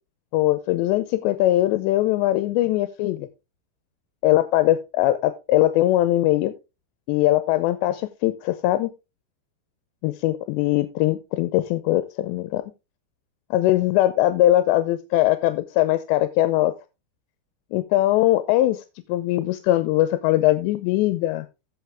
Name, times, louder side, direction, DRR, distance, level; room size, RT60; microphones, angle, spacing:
voice 1, 0.3-3.3 4.2-6.5 7.1-8.9 10.0-12.6 13.5-16.7 17.7-18.8 19.1-21.5, left 15 dB, 85° left, 11 dB, 2.9 m, -21 dB
15.0 x 5.3 x 3.3 m, 0.27 s
omnidirectional pair, 5.0 m